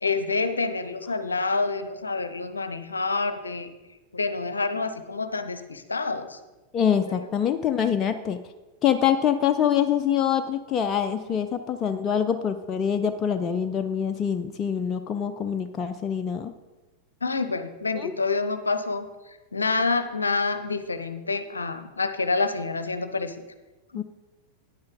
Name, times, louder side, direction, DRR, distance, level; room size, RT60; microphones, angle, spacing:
voice 1, 0.0-3.7 4.1-6.4 7.1-7.3 17.2-23.3 23.9-24.0, left 3 dB, 75° left, 10 dB, 0.7 m, -28 dB
voice 2, 6.7-8.4 8.8-16.5 17.9-18.1 23.9-24.0, left 8 dB, 30° left, 8 dB, 0.5 m, -25 dB
9.8 x 8.7 x 3.8 m, 1.1 s
figure-of-eight pair, 90°, 0 cm